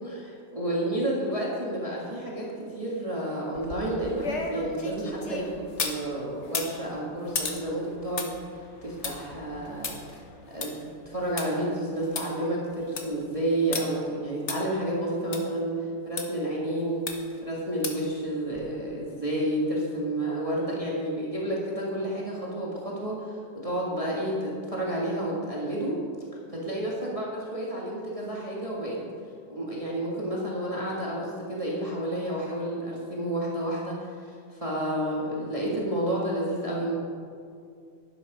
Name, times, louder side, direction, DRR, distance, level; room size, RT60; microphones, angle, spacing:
voice 1, 0.0-8.3 8.8-10.0 10.5-17.1 17.4-26.0 26.5-29.0 29.5-36.9, right 1 dB, 20° right, -5 dB, 1.8 m, -30 dB
sound 1, 3.5-6.0 6.4-11.5 11.8-11.9 12.2-12.3 12.7-13.1 13.7-13.8 14.5-14.6 15.3-15.4 16.2-16.3 17.1-17.4 17.8-18.1 18.5-18.6, left 4 dB, 45° left, 1.4 m, -34 dB
11.5 x 11.0 x 5.1 m, 2.3 s
omnidirectional pair, 1.8 m